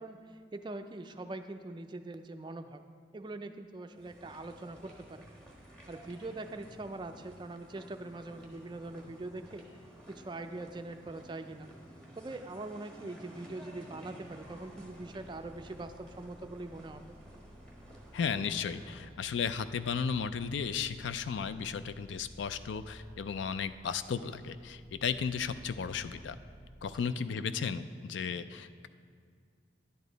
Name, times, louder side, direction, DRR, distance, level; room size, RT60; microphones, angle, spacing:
voice 1, 0.0-2.8 3.1-5.2 5.9-9.7 10.1-11.7 12.2-17.0 26.9-27.0, right 2 dB, 25° right, 8 dB, 0.3 m, -43 dB
sound 1, 3.9-19.2, right 1 dB, 5° left, 1.3 m, -53 dB
sound 2, 14.3-27.0, equal, 50° left, 2.5 m, -55 dB
voice 2, 18.1-26.4 26.8-28.9, left 6 dB, 75° left, 12 dB, 0.4 m, -34 dB
10.5 x 8.4 x 4.0 m, 2.1 s
head